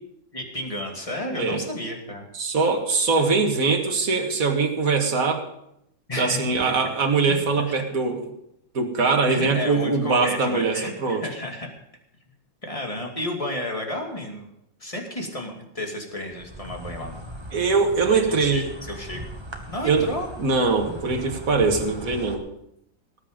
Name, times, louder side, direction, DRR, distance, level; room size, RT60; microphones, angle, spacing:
voice 1, 0.3-2.2 6.1-6.4 6.6-6.9 7.7-7.8 9.3-11.7 12.6-14.5 14.8-17.2 18.3-19.2 19.7-20.3, left 1 dB, 20° left, 1 dB, 2.5 m, -32 dB
voice 2, 2.3-5.4 6.2-8.2 8.7-11.2 17.5-18.6 19.8-20.1 20.4-22.4, right 4 dB, 50° right, 2 dB, 2.2 m, -22 dB
Insect, 16.3-22.4, right 1 dB, 15° right, 1.3 m, -38 dB
19.0 x 9.1 x 5.3 m, 0.78 s
omnidirectional pair, 2.0 m